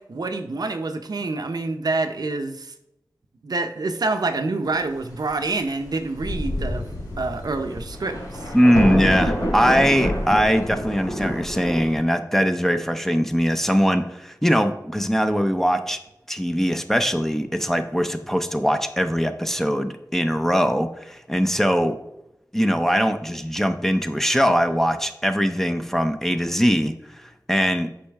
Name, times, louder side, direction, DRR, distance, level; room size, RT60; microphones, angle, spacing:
voice 1, 0.0-2.7 3.4-6.8 7.2-8.5, right 3 dB, 70° right, 7 dB, 0.6 m, -27 dB
Thunder, 5.8-5.9 6.2-11.9, equal, 85° left, 2.7 m, -27 dB
voice 2, 8.5-16.0 16.3-22.0 22.5-26.9 27.5-27.9, equal, 5° left, 7 dB, 0.6 m, -21 dB
8.5 x 5.6 x 3.5 m, 0.84 s
wide cardioid pair, 65°, 7 cm